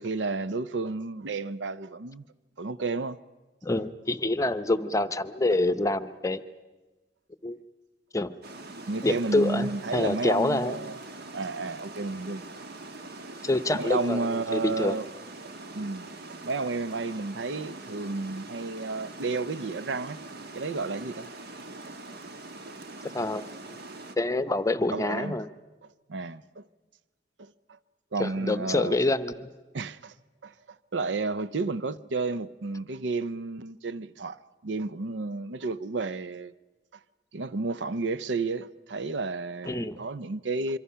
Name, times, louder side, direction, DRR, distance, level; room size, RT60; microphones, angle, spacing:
voice 1, 0.0-2.2 2.6-3.2 8.9-11.0 11.3-12.4 13.7-15.1 15.7-20.2 20.5-21.3 21.9-22.0 22.7-22.8 24.9-25.4 26.1-26.6 27.4-27.8 28.1-29.0 29.7-30.1 30.4-30.5 30.9-36.5 37.3-40.8, right 3 dB, 85° right, 0.6 m, -32 dB
voice 2, 3.6-6.4 7.4-7.6 8.1-8.3 9.0-10.8 13.4-15.0 23.1-23.4 24.2-25.5 28.2-29.5 39.7-40.0, left 2 dB, 20° left, 0.7 m, -26 dB
Water, 8.4-24.1, right 2 dB, 60° right, 1.3 m, -43 dB
26.0 x 24.5 x 5.7 m
head